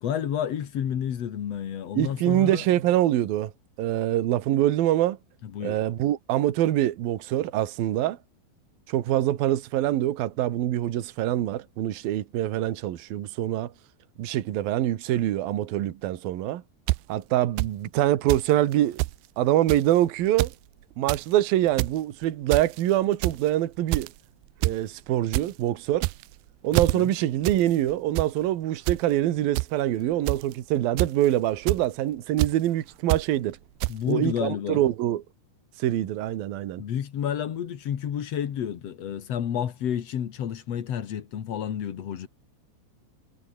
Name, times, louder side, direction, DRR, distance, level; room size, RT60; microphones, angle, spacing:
voice 1, 0.0-2.7 5.4-5.8 26.7-27.1 33.9-34.8 36.8-42.3, left 9 dB, 55° left, 2.0 m, -30 dB
voice 2, 1.9-3.5 3.8-5.2 5.6-8.2 8.9-13.7 14.2-16.6 17.1-19.0 19.4-20.5 21.0-24.1 24.6-26.1 26.6-33.6 34.1-35.2 35.8-36.8, right 13 dB, 60° right, 3.1 m, -25 dB
sound 1, 16.9-17.0 17.6-17.7 18.3-18.5 18.7-18.8 19.0-19.2 19.7-19.9 20.3-20.6 20.9-21.2 21.6-22.0 22.5-22.8 23.2-23.5 23.9-24.2 24.6-24.8 25.1-25.5 25.9-26.4 26.7-26.9 27.4-27.6 27.9-28.3 28.9-29.0 29.6-29.7 30.3-30.5 31.0-31.3 31.7-31.8 32.4-32.5 33.1-33.2 33.8-33.9, right 22 dB, 85° right, 2.2 m, -25 dB
omnidirectional pair, 5.1 m